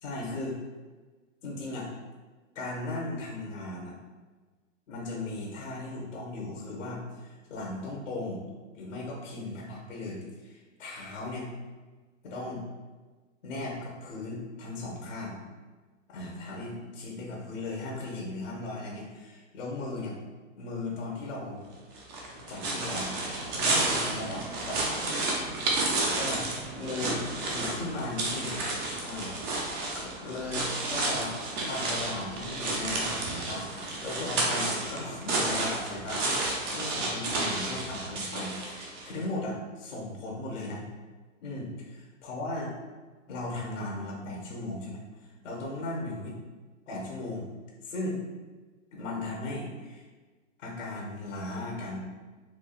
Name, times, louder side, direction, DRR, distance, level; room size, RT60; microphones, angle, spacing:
voice 1, 0.0-0.6 1.4-1.9 2.5-3.9 4.9-8.4 8.7-11.5 12.2-12.6 13.4-15.4 16.1-20.1 20.6-21.6 22.5-23.1 23.5-24.8 26.1-26.5 26.8-28.6 29.0-29.3 29.9-31.3 31.7-40.8 41.4-41.7 42.2-42.7 43.3-46.3 46.9-47.5 47.8-48.2 48.9-50.0 50.6-52.0, left 2 dB, 80° left, -3 dB, 1.1 m, -37 dB
sound 1, 22.0-39.2, right 2 dB, 25° right, 0.6 m, -31 dB
4.5 x 2.4 x 2.3 m, 1.4 s
hypercardioid pair, 135°, 37 cm